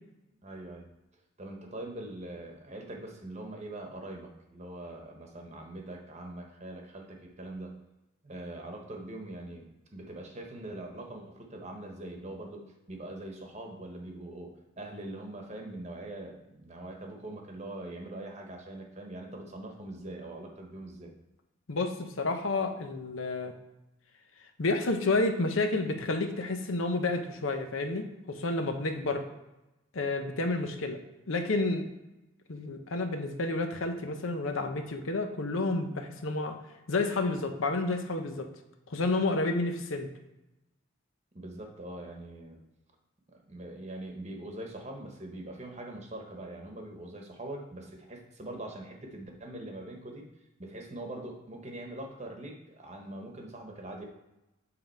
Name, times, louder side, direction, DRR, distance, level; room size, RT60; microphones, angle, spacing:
voice 1, 0.4-0.9 1.4-7.8 8.2-9.6 9.9-21.1 41.3-42.6 43.5-50.2 50.6-54.0, right 1 dB, 35° right, 2 dB, 1.0 m, -42 dB
voice 2, 21.7-23.5 24.6-29.2 29.9-31.0 31.3-31.9 32.5-36.6 36.9-38.5 38.9-40.1, left 2 dB, 80° left, 6 dB, 0.7 m, -30 dB
7.8 x 3.7 x 4.5 m, 0.98 s
head